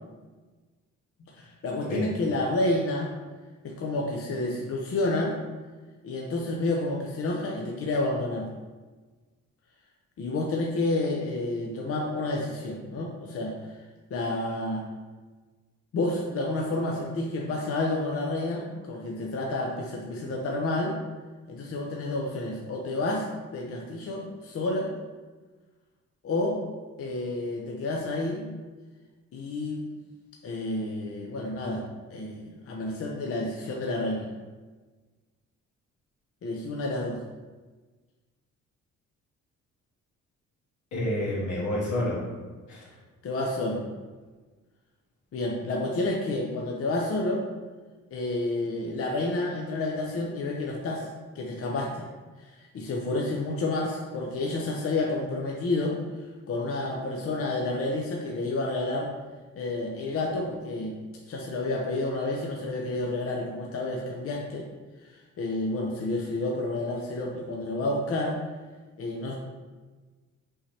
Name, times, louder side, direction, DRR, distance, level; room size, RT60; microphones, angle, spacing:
voice 1, 1.3-3.1 3.6-5.4 6.0-8.5 10.2-13.8 14.1-14.8 15.9-20.9 21.5-24.9 26.2-26.6 27.0-28.5 29.3-29.8 30.4-31.8 32.1-34.3 36.4-37.2 43.2-43.9 45.3-47.4 48.1-51.1 51.3-52.1 52.4-56.0 56.5-59.1 59.6-61.0 61.3-64.7 65.0-68.4 69.0-69.4, left 2 dB, 50° left, -1 dB, 0.7 m, -30 dB
voice 2, 40.9-42.3 42.7-42.9, left 1 dB, 80° left, -5 dB, 1.5 m, -29 dB
5.5 x 2.8 x 3.2 m, 1.3 s
cardioid pair, 90°, 30 cm